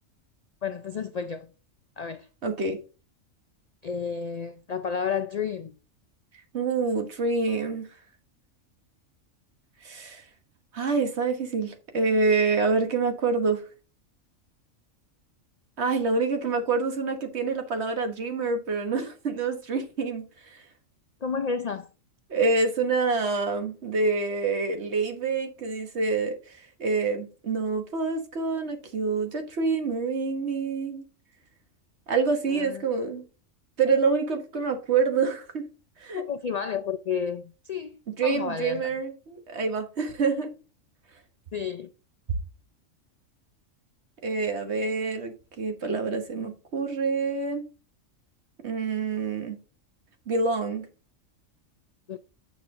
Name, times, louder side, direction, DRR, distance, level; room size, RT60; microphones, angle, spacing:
voice 1, 0.6-1.5 2.0-2.3 3.8-5.7 21.2-21.9 32.5-32.8 36.1-38.9 41.5-41.9 52.1-52.2, left 6 dB, 90° left, 0.3 m, -31 dB
voice 2, 2.4-2.8 6.5-7.9 9.8-10.2 10.7-13.6 15.8-20.2 20.5-20.6 22.3-31.0 32.1-33.2 33.8-35.6 36.0-36.2 38.2-40.5 44.2-47.6 48.6-49.6 50.3-50.9, right 4 dB, 55° right, 1.6 m, -27 dB
9.2 x 6.0 x 3.6 m
omnidirectional pair, 1.3 m